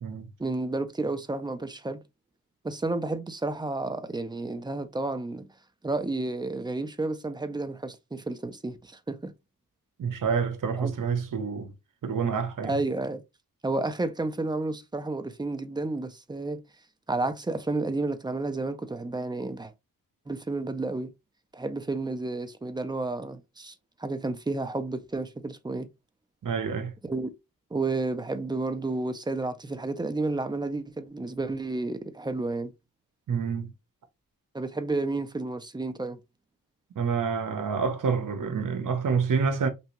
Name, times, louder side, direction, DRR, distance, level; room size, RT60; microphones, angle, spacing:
voice 1, 0.4-2.0 2.6-5.5 5.8-9.3 10.8-10.9 12.6-13.2 13.6-16.6 17.1-19.7 20.3-21.1 21.5-23.7 24.0-25.9 27.0-27.3 27.7-32.7 34.5-36.2, right 2 dB, 15° right, 0.3 m, -31 dB
voice 2, 10.0-11.7 12.0-12.7 26.4-26.9 33.3-33.7 36.9-39.7, right 5 dB, 60° right, 0.8 m, -28 dB
3.3 x 2.7 x 3.0 m
wide cardioid pair, 130°, 36 cm